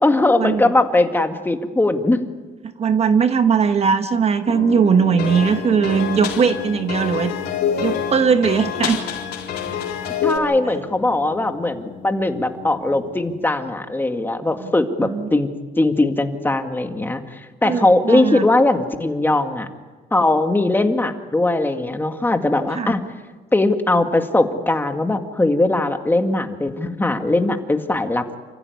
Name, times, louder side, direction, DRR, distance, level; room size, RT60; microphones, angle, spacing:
voice 1, 0.0-2.2 10.2-15.5 15.8-19.7 20.1-23.0 23.5-28.4, left 2 dB, 10° left, 6 dB, 2.0 m, -20 dB
voice 2, 2.6-7.3 7.8-9.0 14.6-14.7 15.0-15.3 17.6-18.5 22.7-23.0, right 6 dB, 40° right, 9 dB, 1.1 m, -19 dB
sound 1, 4.4-13.5, left 5 dB, 50° left, 4.0 m, -35 dB
sound 2, 5.2-10.4, left 8 dB, 75° left, 4.1 m, -26 dB
28.5 x 15.0 x 9.7 m, 1.3 s
cardioid pair, 110°, 17 cm